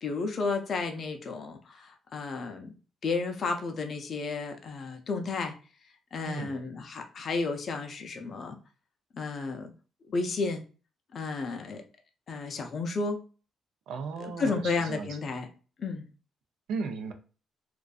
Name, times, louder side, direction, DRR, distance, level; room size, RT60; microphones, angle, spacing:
voice 1, 0.0-2.7 3.0-5.6 6.1-8.6 9.1-9.7 10.1-10.6 11.1-11.8 12.3-13.2 14.2-15.5 15.8-16.1, left 4 dB, 50° left, 5 dB, 0.4 m, -32 dB
voice 2, 13.9-15.2 16.7-17.1, right 5 dB, 80° right, 6 dB, 0.5 m, -35 dB
2.5 x 2.3 x 2.3 m, 0.36 s
cardioid pair, 90°, 0 cm